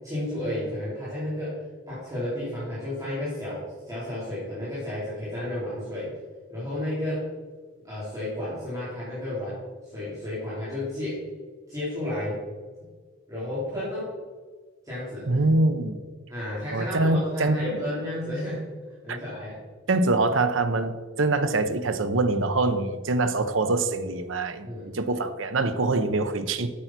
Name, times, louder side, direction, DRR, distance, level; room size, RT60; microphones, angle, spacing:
voice 1, 0.0-1.6 1.9-6.1 6.5-7.3 7.8-9.6 9.9-11.2 11.7-12.4 13.3-14.1 14.8-15.3 16.3-18.6 19.0-19.5 24.6-24.9, left 1 dB, 15° right, -11 dB, 3.8 m, -32 dB
voice 2, 15.3-16.0 16.7-17.8 19.1-19.2 19.9-26.7, right 2 dB, 70° right, 9 dB, 0.8 m, -24 dB
8.5 x 8.0 x 6.0 m, 1.4 s
head